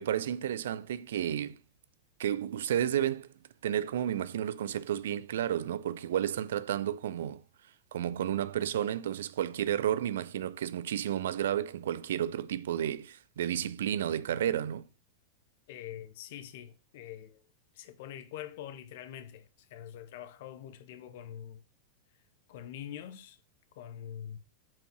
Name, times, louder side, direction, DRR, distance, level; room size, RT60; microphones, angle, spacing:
voice 1, 0.0-1.6 2.2-3.3 3.6-7.4 7.9-14.8, right 10 dB, 60° right, 0.5 m, -32 dB
voice 2, 15.7-17.5 17.7-21.6 22.5-23.4 23.7-24.4, left 10 dB, 55° left, 0.9 m, -44 dB
7.3 x 5.2 x 6.0 m
figure-of-eight pair, 90°, 0 cm